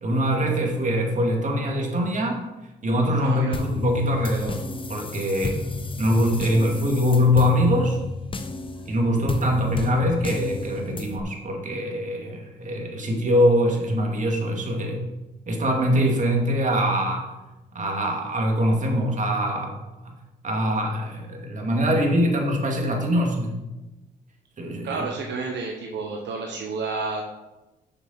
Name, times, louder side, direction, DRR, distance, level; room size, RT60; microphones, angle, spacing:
voice 1, 0.0-2.4 2.8-4.6 4.9-5.6 6.0-8.0 8.8-15.0 15.5-17.3 17.7-19.7 20.0-20.1 20.4-23.6 24.6-25.1, equal, 40° right, 1 dB, 2.3 m, -23 dB
voice 2, 3.2-3.6 24.8-27.2, right 4 dB, 70° right, 1 dB, 1.1 m, -30 dB
sound 1, 3.5-11.2, left 3 dB, 25° left, 0.8 m, -32 dB
7.0 x 6.5 x 5.7 m, 1.1 s
cardioid pair, 75°, 19 cm